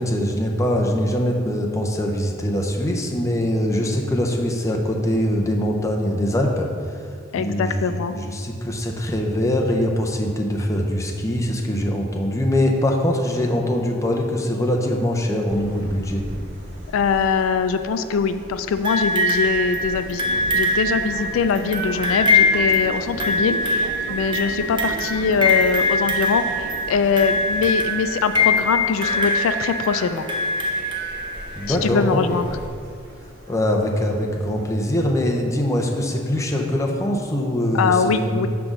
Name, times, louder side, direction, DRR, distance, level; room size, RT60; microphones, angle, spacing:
voice 1, 0.0-6.7 7.3-16.2 31.5-32.2 33.5-38.5, left 1 dB, 15° left, 0 dB, 0.6 m, -22 dB
voice 2, 7.3-8.2 16.9-20.2 20.5-30.3 31.7-32.5 37.7-38.5, left 5 dB, 90° left, 10 dB, 0.3 m, -22 dB
sound 1, 15.5-34.7, right 1 dB, 65° right, 1.4 m, -40 dB
sound 2, 18.8-31.7 32.6-32.7, left 2 dB, 25° right, 0.7 m, -23 dB
sound 3, 20.2-27.4, right 4 dB, 90° right, 0.4 m, -37 dB
5.9 x 3.8 x 6.1 m, 2.2 s
head